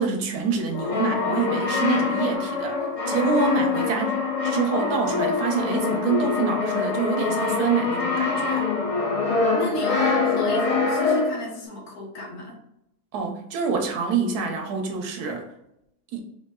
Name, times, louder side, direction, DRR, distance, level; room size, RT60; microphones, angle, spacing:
voice 1, 0.0-2.8 3.1-4.2 4.4-8.7 13.1-15.5 16.1-16.2, right 5 dB, 80° right, 3 dB, 1.3 m, -26 dB
Brass instrument, 0.7-11.5, left 4 dB, 40° left, 0.5 m, -24 dB
voice 2, 9.5-12.6, left 1 dB, 75° left, -2 dB, 1.6 m, -34 dB
4.5 x 2.8 x 2.3 m, 0.81 s
omnidirectional pair, 1.6 m